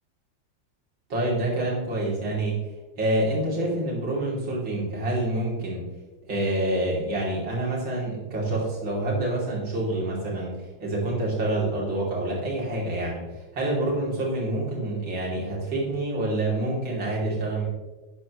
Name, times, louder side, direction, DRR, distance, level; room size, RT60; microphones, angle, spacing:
voice 1, 1.1-2.6 3.0-5.9 6.3-13.2 13.5-17.7, right 1 dB, 80° right, -4 dB, 3.8 m, -27 dB
11.5 x 9.8 x 3.1 m, 1.2 s
omnidirectional pair, 2.1 m